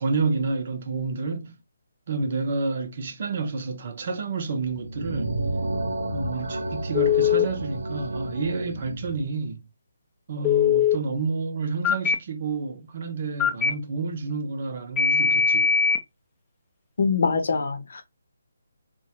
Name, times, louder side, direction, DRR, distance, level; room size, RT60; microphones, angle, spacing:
voice 1, 0.0-1.6 2.1-5.4 6.1-9.6 10.3-15.7, right 4 dB, 45° right, 0.7 m, -29 dB
sound 1, 4.7-9.3, right 1 dB, 85° right, 0.8 m, -31 dB
Telephone, 6.9-7.5 10.4-11.0 11.8-12.1 13.4-13.7 15.0-16.0, left 7 dB, 15° left, 0.5 m, -20 dB
voice 2, 17.0-18.0, left 4 dB, 65° left, 0.7 m, -24 dB
3.0 x 2.2 x 2.9 m
figure-of-eight pair, 155°, 0 cm